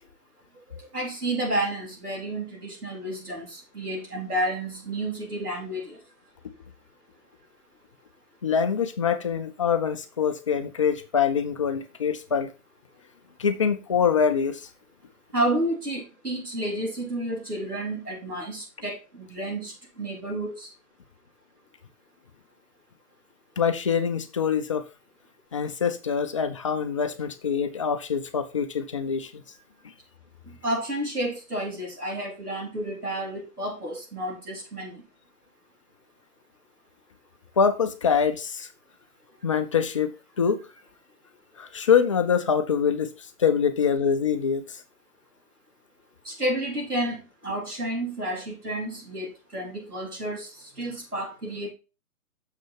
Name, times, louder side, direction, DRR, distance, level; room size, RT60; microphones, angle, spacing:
voice 1, 0.7-6.0 15.3-20.7 30.6-35.0 46.2-51.7, right 1 dB, 90° right, 4.1 m, -31 dB
voice 2, 8.4-12.5 13.4-14.7 23.6-24.8 25.5-29.4 37.6-38.7 39.4-40.1 40.4-40.6 41.6-43.1 43.4-44.8, left 7 dB, 25° left, 0.5 m, -24 dB
6.7 x 6.2 x 4.3 m
figure-of-eight pair, 130°, 45 cm